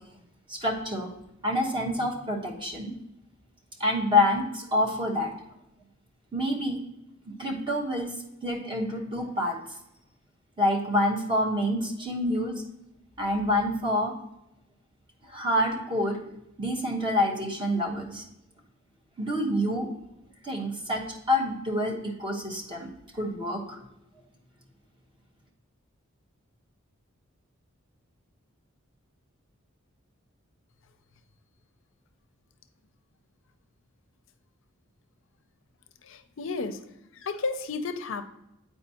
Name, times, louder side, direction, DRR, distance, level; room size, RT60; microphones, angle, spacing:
voice 1, 0.5-1.1 1.4-2.9 3.8-5.3 6.3-6.8 7.3-8.1 8.4-9.6 10.6-12.6 13.2-14.1 15.3-16.2 16.6-18.2 19.2-19.9 20.4-21.0 21.3-22.9 23.1-23.8, left 1 dB, 25° right, -1 dB, 1.1 m, -27 dB
voice 2, 36.0-36.8 37.1-38.3, left 4 dB, 65° left, 9 dB, 0.5 m, -32 dB
8.4 x 4.6 x 2.8 m, 0.86 s
head